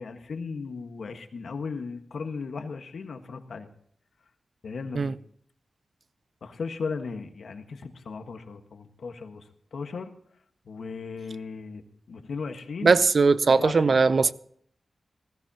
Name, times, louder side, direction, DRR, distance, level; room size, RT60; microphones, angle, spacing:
voice 1, 0.0-3.7 4.6-5.2 6.4-9.5 9.7-10.1 10.6-11.8 12.1-12.9 13.5-14.0, left 4 dB, 80° left, 1.6 m, -36 dB
voice 2, 12.8-14.3, right 4 dB, 60° right, 0.6 m, -20 dB
20.0 x 16.0 x 3.0 m
wide cardioid pair, 90°, 0 cm